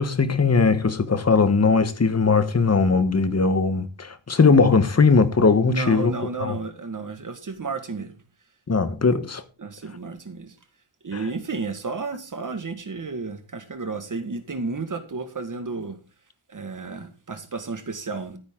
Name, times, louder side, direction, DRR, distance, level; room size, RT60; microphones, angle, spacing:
voice 1, 0.0-6.1 6.4-6.6 8.7-9.4, left 4 dB, 30° left, 1.2 m, -19 dB
voice 2, 5.6-8.2 9.6-10.6 11.0-16.0 16.5-18.4, right 4 dB, 40° right, 1.8 m, -32 dB
13.5 x 9.3 x 3.8 m
wide cardioid pair, 175°, 49 cm